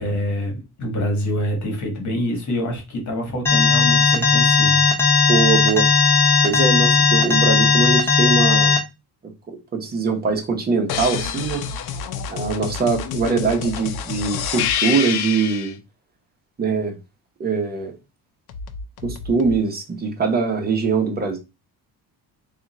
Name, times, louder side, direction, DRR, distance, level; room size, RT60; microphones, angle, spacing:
voice 1, 0.0-4.8, equal, 45° left, 1.5 m, -26 dB
Alarm, 3.5-8.8, left 5 dB, 5° left, 0.7 m, -16 dB
voice 2, 5.3-5.9 6.4-8.8 9.5-11.6 12.3-15.8 16.6-17.0 17.4-17.9 19.0-21.4, right 4 dB, 25° right, 0.9 m, -22 dB
sound 1, 10.9-15.7 18.5-19.6, left 8 dB, 75° left, 0.6 m, -27 dB
3.6 x 2.5 x 4.1 m
cardioid pair, 165°, 38 cm